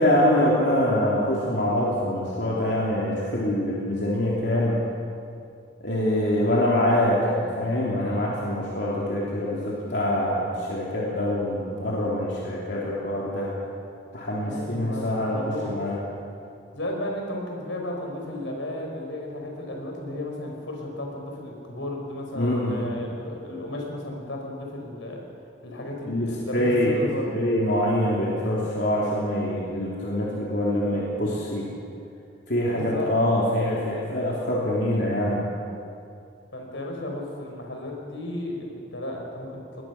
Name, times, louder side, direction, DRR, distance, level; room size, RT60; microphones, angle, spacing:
voice 1, 0.0-4.8 5.8-13.5 14.1-16.0 22.3-22.8 26.1-26.9 27.3-31.7 32.5-35.4, left 1 dB, 65° left, -5 dB, 3.3 m, -24 dB
voice 2, 14.4-15.8 16.7-25.2 25.6-27.3 32.7-33.1 36.5-39.8, left 1 dB, 85° left, 0 dB, 4.9 m, -34 dB
22.5 x 19.5 x 6.0 m, 2.5 s
head